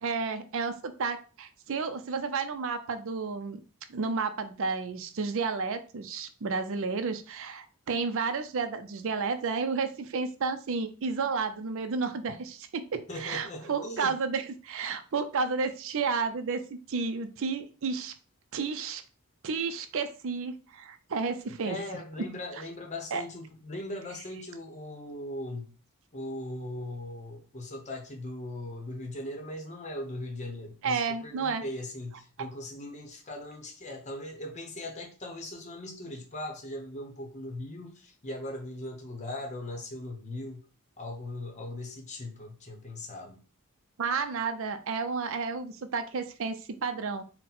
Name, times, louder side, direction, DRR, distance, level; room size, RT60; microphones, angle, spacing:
voice 1, 0.0-3.6 3.9-16.6 16.9-18.1 18.5-19.0 19.4-21.8 23.1-23.2 30.8-31.6 44.0-47.2, right 4 dB, 60° right, 0.5 m, -31 dB
voice 2, 13.1-14.2 21.6-25.7 26.1-40.7 41.0-43.4, left 1 dB, 30° left, 0.8 m, -39 dB
3.9 x 2.1 x 4.2 m
head